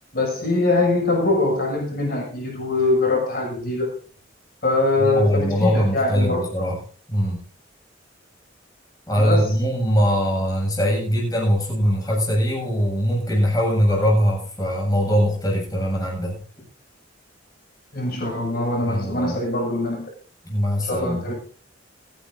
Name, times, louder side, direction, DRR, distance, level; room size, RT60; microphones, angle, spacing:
voice 1, 0.1-3.9 4.6-6.4 9.2-9.6 17.9-20.0 20.8-21.3, left 2 dB, 55° left, -1 dB, 7.2 m, -22 dB
voice 2, 5.0-6.8 7.1-7.4 9.1-16.4 18.9-19.4 20.4-21.3, equal, 20° left, -1 dB, 7.9 m, -21 dB
30.0 x 10.5 x 2.7 m, 0.40 s
head